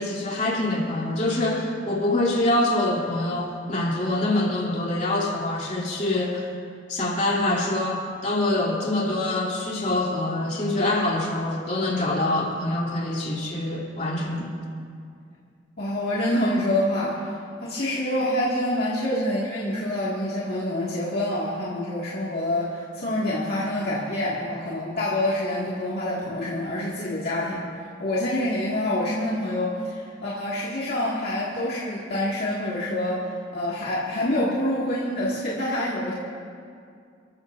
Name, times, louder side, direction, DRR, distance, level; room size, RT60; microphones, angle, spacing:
voice 1, 0.0-6.5 6.9-14.5, left 1 dB, 40° left, -4 dB, 3.1 m, -25 dB
voice 2, 15.8-36.1, left 1 dB, 55° left, -7 dB, 2.1 m, -26 dB
29.0 x 14.5 x 2.7 m, 2.3 s
head